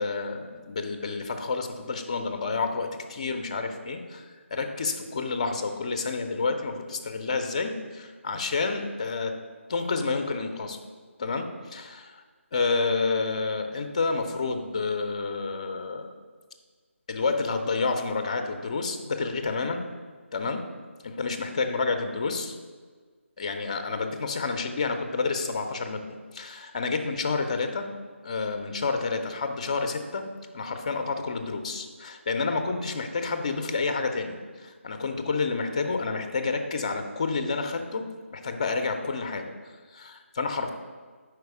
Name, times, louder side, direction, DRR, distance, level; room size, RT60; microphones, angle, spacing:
voice 1, 0.0-9.4 9.7-10.8 11.2-12.2 12.5-16.1 17.1-19.9 20.3-20.6 21.0-22.6 23.4-27.8 28.2-30.3 30.5-39.5 39.9-40.7, left 4 dB, 30° left, 7 dB, 0.4 m, -29 dB
4.6 x 4.6 x 4.6 m, 1.5 s
figure-of-eight pair, 155°, 7 cm